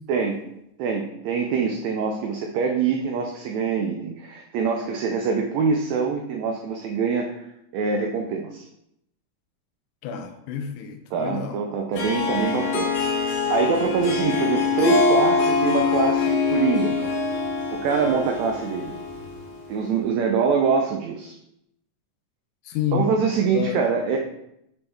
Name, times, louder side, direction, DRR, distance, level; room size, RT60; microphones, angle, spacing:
voice 1, 0.8-7.4 7.7-8.6 11.1-12.9 13.5-17.0 17.7-19.0 19.7-21.3 22.9-24.2, right 5 dB, 80° right, 2 dB, 1.6 m, -24 dB
voice 2, 10.0-11.6 22.7-23.1 23.5-23.8, left 7 dB, 90° left, 6 dB, 2.2 m, -29 dB
Harp, 11.9-19.6, left 4 dB, 65° left, 2.3 m, -24 dB
7.0 x 4.0 x 3.4 m, 0.80 s
omnidirectional pair, 3.7 m